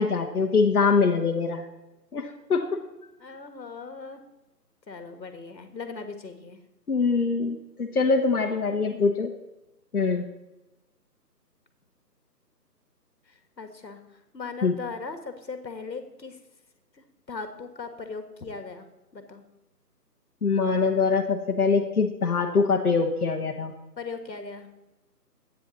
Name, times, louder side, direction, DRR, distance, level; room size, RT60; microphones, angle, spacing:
voice 1, 0.0-1.6 2.1-2.7 6.9-9.3 9.9-10.2 14.6-14.7 20.4-23.7, left 4 dB, 60° left, 1 dB, 1.2 m, -23 dB
voice 2, 3.2-4.2 4.9-6.6 8.9-9.3 13.3-14.0 14.3-16.4 16.9-18.9 19.1-19.4 24.0-24.7, left 4 dB, 85° left, 7 dB, 1.8 m, -39 dB
11.0 x 9.3 x 4.1 m, 0.97 s
figure-of-eight pair, 175°, 50 cm